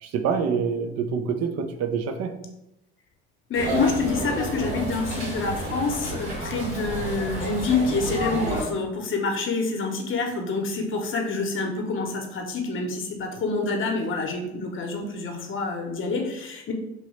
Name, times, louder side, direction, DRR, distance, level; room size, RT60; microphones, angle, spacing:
voice 1, 0.0-2.4, right 6 dB, 50° right, 8 dB, 0.5 m, -26 dB
voice 2, 3.5-16.7, left 3 dB, 40° left, 2 dB, 0.8 m, -27 dB
sound 1, 3.5-8.6, right 1 dB, 90° right, 1.4 m, -30 dB
3.1 x 2.7 x 3.2 m, 0.85 s
hypercardioid pair, 70°, 31 cm